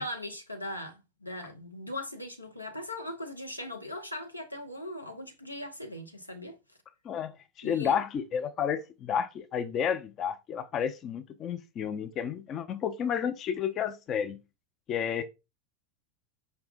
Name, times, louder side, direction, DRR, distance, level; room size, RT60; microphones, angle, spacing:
voice 1, 0.0-6.6 7.6-8.0, left 1 dB, 85° left, 0.6 m, -39 dB
voice 2, 7.0-14.4 14.9-15.2, left 8 dB, 35° left, 0.4 m, -31 dB
4.8 x 2.2 x 3.9 m
figure-of-eight pair, 85°, 0 cm